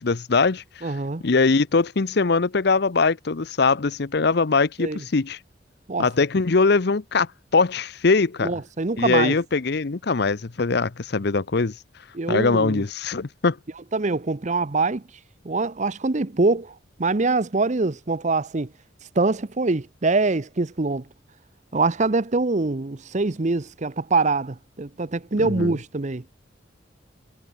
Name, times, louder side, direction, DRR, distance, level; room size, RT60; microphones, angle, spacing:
voice 1, 0.0-0.9 1.2-5.4 6.0-8.5 9.0-11.7 12.3-13.6 25.4-25.7, left 4 dB, 60° left, 0.7 m, -22 dB
voice 2, 0.8-1.2 4.8-5.0 5.9-6.1 8.4-9.4 12.1-12.8 13.9-15.0 15.4-18.7 19.2-21.0 21.7-26.2, right 3 dB, 40° right, 0.8 m, -24 dB
head